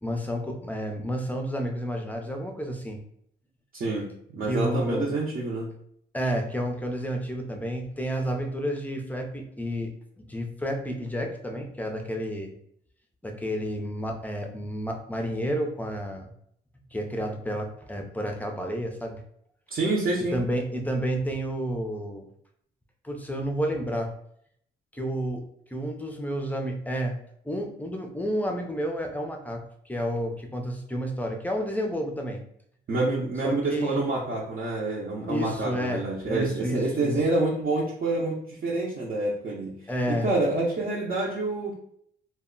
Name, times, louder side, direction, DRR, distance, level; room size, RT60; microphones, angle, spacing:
voice 1, 0.0-3.0 4.5-5.1 6.1-12.5 13.2-16.3 16.9-19.2 20.3-22.3 23.0-24.1 24.9-25.4 25.7-27.2 27.4-32.4 33.4-34.1 35.3-37.1 39.9-40.3, equal, 10° left, 3 dB, 0.5 m, -30 dB
voice 2, 3.7-5.7 19.7-20.4 32.9-41.7, right 2 dB, 45° right, -5 dB, 0.7 m, -27 dB
2.1 x 2.0 x 3.7 m, 0.68 s
cardioid pair, 90°, 20 cm